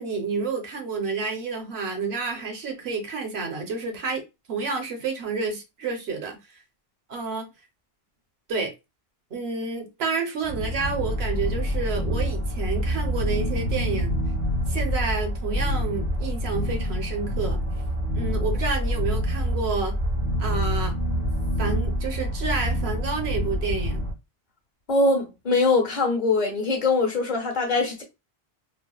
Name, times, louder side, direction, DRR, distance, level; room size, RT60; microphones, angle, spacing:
voice 1, 0.0-4.2 4.5-6.6 7.1-7.5 8.5-8.7 9.3-14.1 14.7-17.6 18.1-20.0 20.4-20.9 21.6-24.0, right 4 dB, 80° right, 1.0 m, -29 dB
sound 1, 10.4-24.1, equal, 15° right, 0.8 m, -26 dB
voice 2, 24.9-28.0, left 3 dB, 45° left, 1.0 m, -22 dB
3.3 x 2.0 x 2.3 m
omnidirectional pair, 1.1 m